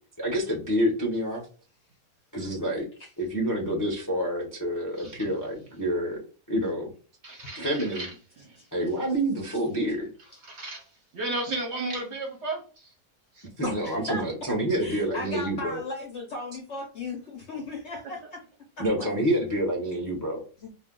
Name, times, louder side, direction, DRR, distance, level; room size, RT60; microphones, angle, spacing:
voice 1, 0.2-1.4 2.3-2.8 3.2-6.2 6.5-6.9 7.5-8.1 8.7-10.1 13.6-15.8 18.8-20.4, equal, 25° left, -2 dB, 0.4 m, -28 dB
voice 2, 5.0-5.3 7.2-8.6 10.4-12.9 13.3-13.5 18.2-18.3, right 2 dB, 55° right, 1 dB, 0.8 m, -35 dB
voice 3, 13.6-14.2 14.8-18.4 18.8-19.1 20.6-20.7, left 2 dB, 60° left, 0 dB, 0.7 m, -36 dB
2.5 x 2.2 x 3.6 m, 0.39 s
omnidirectional pair, 1.7 m